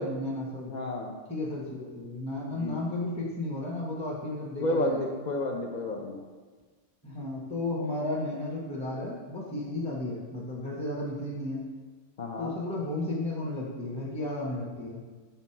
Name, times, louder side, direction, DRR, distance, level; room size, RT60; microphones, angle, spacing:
voice 1, 0.0-0.7 1.3-5.1 7.0-11.6 12.4-15.0, left 2 dB, 5° left, -4 dB, 0.8 m, -33 dB
voice 2, 0.7-1.1 2.5-2.9 4.6-6.2 12.2-12.5, left 1 dB, 55° left, 1 dB, 0.5 m, -31 dB
5.8 x 4.0 x 4.4 m, 1.4 s
omnidirectional pair, 1.3 m